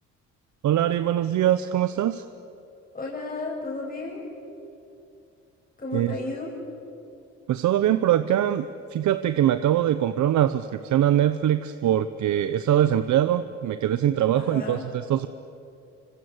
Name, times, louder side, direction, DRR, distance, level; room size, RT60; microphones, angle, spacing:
voice 1, 0.6-2.2 5.9-6.1 7.5-15.3, right 11 dB, 70° right, 11 dB, 0.9 m, -23 dB
voice 2, 2.9-4.3 5.8-6.5 14.4-14.8, left 3 dB, 30° left, -3 dB, 7.0 m, -33 dB
27.0 x 25.5 x 8.0 m, 2.7 s
cardioid pair, 90°, 30 cm